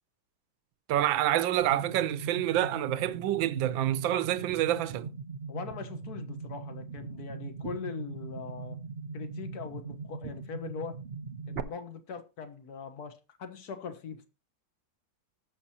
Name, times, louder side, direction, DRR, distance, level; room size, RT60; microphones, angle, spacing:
voice 1, 0.9-5.1, right 12 dB, 80° right, 1.5 m, -27 dB
sound 1, 1.6-11.6, right 5 dB, 55° right, 0.7 m, -40 dB
voice 2, 5.5-8.8 9.1-11.0 11.5-13.1 13.4-14.3, left 6 dB, 55° left, 1.7 m, -41 dB
19.5 x 6.7 x 2.9 m
omnidirectional pair, 2.1 m